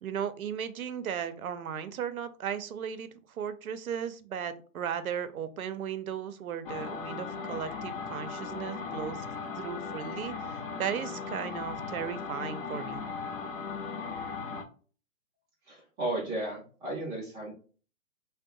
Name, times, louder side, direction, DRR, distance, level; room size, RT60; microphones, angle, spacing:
voice 1, 0.0-9.2 9.6-13.0, right 8 dB, 80° right, 11 dB, 0.6 m, -36 dB
sound 1, 6.7-14.6, left 5 dB, 40° left, 0.6 m, -37 dB
voice 2, 15.7-17.5, right 1 dB, 10° right, -5 dB, 0.6 m, -34 dB
2.6 x 2.2 x 3.8 m, 0.39 s
hypercardioid pair, 140°, 42 cm